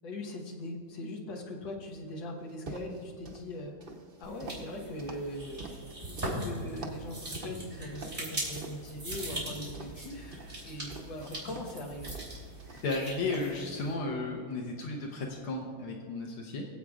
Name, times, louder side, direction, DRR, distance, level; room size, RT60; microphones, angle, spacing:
voice 1, 0.0-3.9 4.2-5.7 6.2-10.4 10.6-12.2, left 1 dB, 65° left, -1 dB, 2.0 m, -40 dB
sound 1, 2.5-3.4 3.8-6.4 6.8-7.1 7.3-8.3 8.5-9.3 9.7-11.7 12.1-13.0 13.3-13.6, right 3 dB, 70° right, 0.5 m, -45 dB
banana crushing, 4.2-13.9, right 1 dB, 25° right, 3.4 m, -41 dB
voice 2, 12.8-16.7, left 3 dB, 80° left, 0 dB, 1.8 m, -34 dB
24.0 x 8.0 x 2.4 m, 2.1 s
omnidirectional pair, 2.3 m